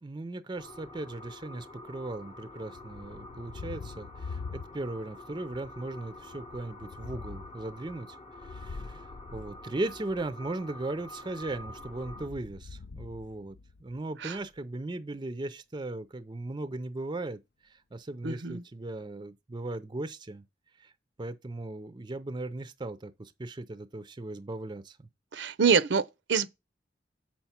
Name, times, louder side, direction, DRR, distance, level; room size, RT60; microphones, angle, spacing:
voice 1, 0.0-8.2 8.4-20.4 20.8-20.9 21.2-25.1, right 2 dB, 25° right, 0.5 m, -38 dB
sound 1, 0.6-12.3, left 1 dB, 30° left, 0.8 m, -47 dB
Thunder, 2.7-5.1 5.5-10.3 11.3-14.0, left 4 dB, 60° left, 0.5 m, -45 dB
voice 2, 18.2-18.6 25.3-26.5, right 6 dB, 75° right, 0.6 m, -26 dB
7.4 x 5.8 x 4.3 m
head